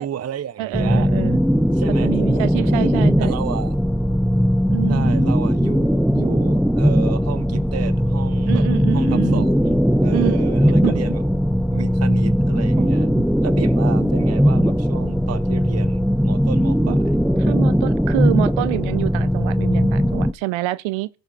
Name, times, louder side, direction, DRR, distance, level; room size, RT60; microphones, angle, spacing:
voice 1, 0.0-1.1 1.7-2.9 3.2-3.8 4.9-8.6 8.9-11.2 11.7-13.1 13.4-17.2, right 9 dB, 35° right, 0.7 m, -32 dB
voice 2, 0.6-1.4 2.0-3.4 4.7-5.4 8.5-9.5 10.1-10.4 10.8-10.9 12.8-13.2 16.9-17.0 17.4-21.1, right 19 dB, 80° right, 0.8 m, -27 dB
sound 1, 0.7-20.3, equal, ahead, 0.6 m, -18 dB
16.5 x 5.7 x 5.4 m
supercardioid pair, 75°, 47 cm